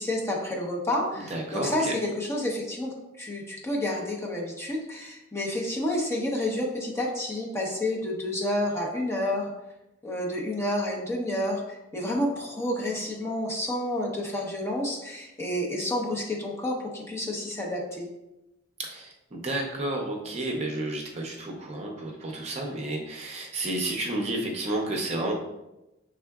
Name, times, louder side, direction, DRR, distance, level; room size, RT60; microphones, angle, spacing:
voice 1, 0.0-9.5 10.0-18.1, left 1 dB, 15° left, -2 dB, 0.8 m, -29 dB
voice 2, 1.3-1.9 18.8-25.3, right 1 dB, 35° right, 0 dB, 0.7 m, -31 dB
5.7 x 3.6 x 2.3 m, 0.94 s
head